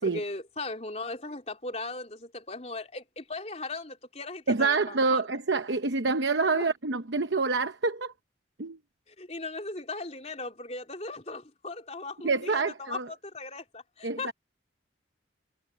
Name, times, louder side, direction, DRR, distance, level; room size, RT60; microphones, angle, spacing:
voice 1, 0.0-5.2 6.5-6.7 9.1-14.3, left 3 dB, 35° left, 3.5 m, -38 dB
voice 2, 4.5-8.1 8.6-8.8 12.2-13.1 14.0-14.3, right 4 dB, 75° right, 0.9 m, -27 dB
head